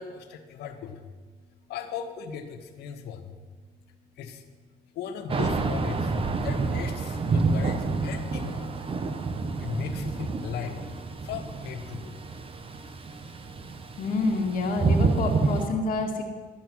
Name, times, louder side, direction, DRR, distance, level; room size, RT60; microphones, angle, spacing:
voice 1, 0.0-14.0, left 7 dB, 80° left, 6 dB, 1.3 m, -39 dB
Thunder / Rain, 5.3-15.7, right 4 dB, 35° right, 0.9 m, -28 dB
voice 2, 14.0-16.2, left 3 dB, 55° left, 0 dB, 1.7 m, -27 dB
12.5 x 8.9 x 6.1 m, 1.5 s
cardioid pair, 110°, 17 cm